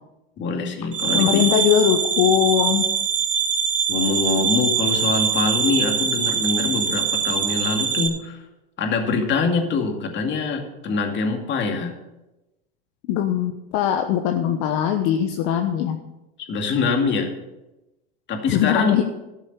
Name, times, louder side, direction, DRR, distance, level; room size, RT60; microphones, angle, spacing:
voice 1, 0.4-1.5 3.9-8.4 8.8-11.9 16.5-17.3 18.3-19.0, left 4 dB, 35° left, 3 dB, 2.4 m, -24 dB
sound 1, 0.9-8.1, right 7 dB, 25° right, 2.8 m, -23 dB
voice 2, 1.1-2.8 13.1-16.0 18.5-19.0, left 9 dB, 55° left, 5 dB, 1.1 m, -20 dB
12.5 x 7.3 x 6.7 m, 0.98 s
supercardioid pair, 115°, 32 cm